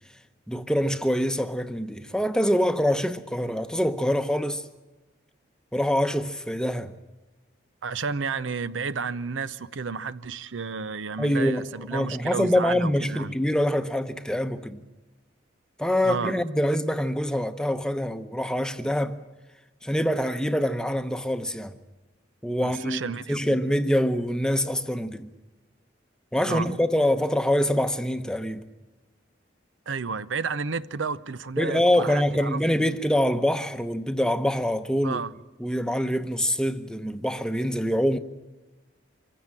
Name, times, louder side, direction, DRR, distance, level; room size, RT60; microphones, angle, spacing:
voice 1, 0.5-4.6 5.7-6.9 11.2-14.8 15.8-19.2 19.8-21.8 22.4-23.0 23.3-25.3 26.3-28.6 31.6-35.2 35.6-38.2, equal, 5° left, 0.8 m, -25 dB
voice 2, 7.8-13.3 16.0-16.4 22.6-23.6 26.5-26.7 29.9-33.0 35.0-35.3, right 5 dB, 90° right, 0.7 m, -32 dB
25.5 x 15.5 x 9.0 m
head